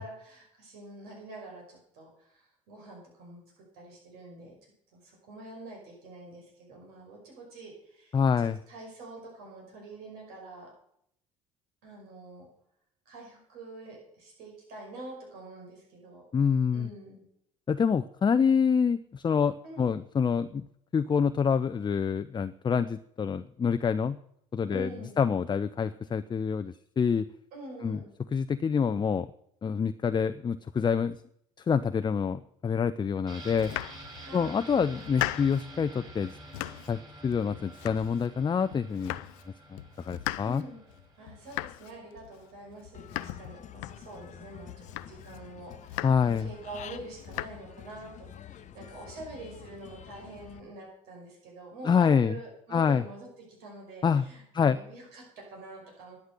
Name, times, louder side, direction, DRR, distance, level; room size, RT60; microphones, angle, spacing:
voice 1, 0.0-4.6 4.9-10.7 11.8-12.5 13.1-16.3 16.7-17.2 19.6-19.9 24.7-25.2 27.5-28.1 34.1-34.6 40.4-40.8 41.2-56.2, right 2 dB, 70° right, -1 dB, 5.4 m, -46 dB
voice 2, 8.1-8.6 16.3-16.9 17.7-20.7 20.9-24.2 24.5-27.3 27.8-28.0 28.3-29.3 29.6-31.2 31.6-33.7 34.3-36.3 36.9-39.2 39.7-39.8 40.0-40.6 46.0-46.5 51.8-52.4 52.7-53.0 54.0-54.3 54.5-54.8, left 6 dB, 25° left, 11 dB, 0.6 m, -26 dB
sound 1, 33.3-42.9 43.2-43.3, right 2 dB, 25° right, 6.3 m, -49 dB
Domestic sounds home sounds, 33.5-34.4 34.8-35.7 36.1-37.0 37.3-38.4 38.7-39.5 39.8-44.3 44.7-45.4 45.7-46.4 46.8-47.5, left 18 dB, 75° left, 0.5 m, -39 dB
Human voice / Bird, 42.9-50.6, left 9 dB, 45° left, 1.0 m, -48 dB
11.0 x 10.5 x 6.7 m, 0.71 s
hypercardioid pair, 60°, 17 cm